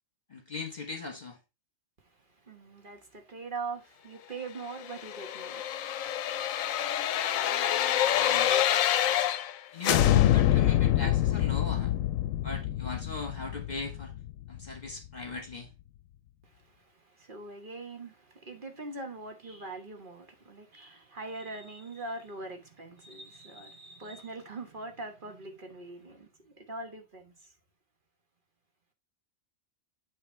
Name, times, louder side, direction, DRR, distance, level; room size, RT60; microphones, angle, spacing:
voice 1, 0.3-1.4 8.1-8.6 9.7-11.9 12.4-14.1 14.5-15.7, left 4 dB, 35° left, 1.2 m, -38 dB
voice 2, 2.5-5.8 16.4-27.3, right 3 dB, 40° right, 1.3 m, -42 dB
sound 1, 4.8-9.6 9.8-14.7 15.1-15.2, left 12 dB, 85° left, 1.0 m, -26 dB
8.8 x 3.2 x 4.3 m
omnidirectional pair, 1.4 m